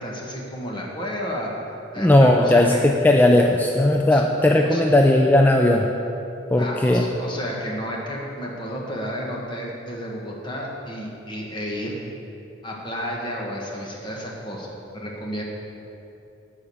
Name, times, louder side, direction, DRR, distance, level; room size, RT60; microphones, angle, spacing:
voice 1, 0.0-1.5 1.9-2.8 4.0-4.9 6.6-12.0 12.6-15.4, equal, 25° left, -2 dB, 1.4 m, -32 dB
voice 2, 2.0-2.8 3.0-5.9 6.5-7.0, left 1 dB, 10° left, 2 dB, 0.3 m, -17 dB
9.9 x 5.1 x 7.1 m, 2.9 s
head